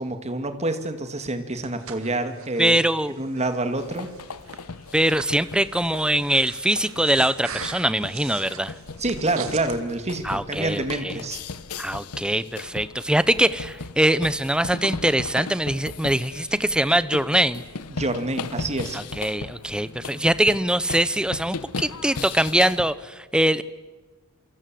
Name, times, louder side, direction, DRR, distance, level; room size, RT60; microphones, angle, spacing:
voice 1, 0.0-2.8 3.1-4.1 9.0-11.4 17.9-19.0, right 2 dB, 30° right, 8 dB, 2.3 m, -27 dB
Breathing, 1.3-9.8, right 7 dB, 65° right, 2.2 m, -41 dB
voice 2, 2.6-3.2 4.9-8.7 10.2-11.1 11.8-17.6 18.9-23.6, right 1 dB, 5° right, 16 dB, 0.8 m, -22 dB
sound 1, 3.8-22.9, left 4 dB, 90° left, 1.1 m, -37 dB
28.0 x 24.5 x 7.7 m, 1.3 s
head